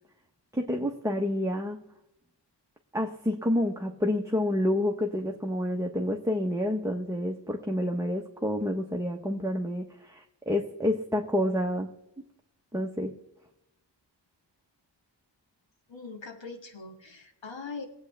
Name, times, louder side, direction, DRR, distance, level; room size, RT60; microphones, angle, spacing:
voice 1, 0.5-1.8 2.9-11.9 12.7-13.2, left 1 dB, 5° right, 1 dB, 1.1 m, -29 dB
voice 2, 15.9-17.9, left 4 dB, 85° left, 4 dB, 1.9 m, -41 dB
23.0 x 8.5 x 3.4 m, 0.85 s
wide cardioid pair, 90°, 44 cm